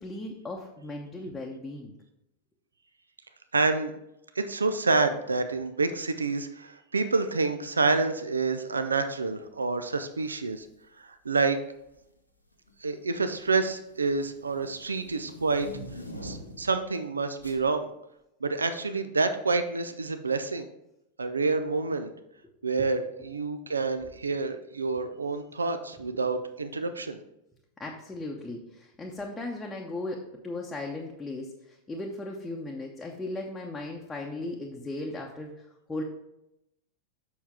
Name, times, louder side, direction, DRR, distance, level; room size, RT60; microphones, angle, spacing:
voice 1, 0.0-1.9 22.8-22.9 26.1-26.2 27.8-36.0, left 2 dB, 10° left, -2 dB, 0.8 m, -37 dB
voice 2, 3.5-3.9 4.4-10.7 11.0-11.6 12.8-15.7 16.2-17.9 18.4-20.7 21.2-22.1 22.6-27.2, right 3 dB, 75° right, 9 dB, 0.5 m, -28 dB
sound 1, 10.5-10.8 11.7-12.2 12.5-16.8 17.4-17.6, equal, 90° left, 0.9 m, -44 dB
7.1 x 6.1 x 3.6 m, 0.85 s
figure-of-eight pair, 90°, 0 cm